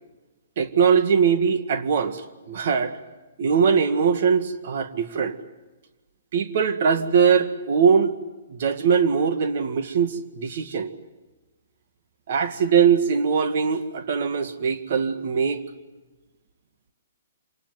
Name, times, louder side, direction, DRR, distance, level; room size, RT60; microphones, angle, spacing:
voice 1, 0.6-3.0 3.4-5.4 6.3-8.1 8.5-10.9 12.3-15.6, right 6 dB, 55° right, 9 dB, 2.0 m, -21 dB
26.5 x 19.0 x 9.4 m, 1.2 s
hypercardioid pair, 140°, 0 cm